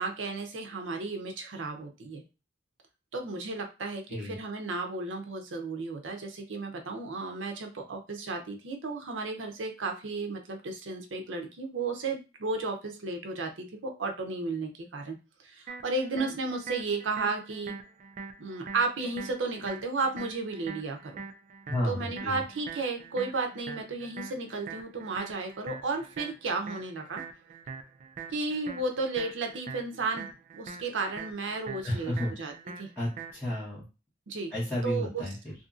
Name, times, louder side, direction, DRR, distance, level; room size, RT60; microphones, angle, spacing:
voice 1, 0.0-2.2 3.1-15.2 15.4-17.8 18.4-21.1 21.8-27.2 28.3-32.9 34.3-34.5 34.8-35.3, right 3 dB, 85° right, 4 dB, 0.6 m, -33 dB
sound 1, 15.7-33.6, right 5 dB, 40° right, 0.3 m, -44 dB
voice 2, 21.7-22.4 31.8-32.3 33.0-33.8 34.5-35.5, left 1 dB, 10° left, -11 dB, 1.2 m, -32 dB
2.7 x 2.5 x 2.4 m, 0.30 s
head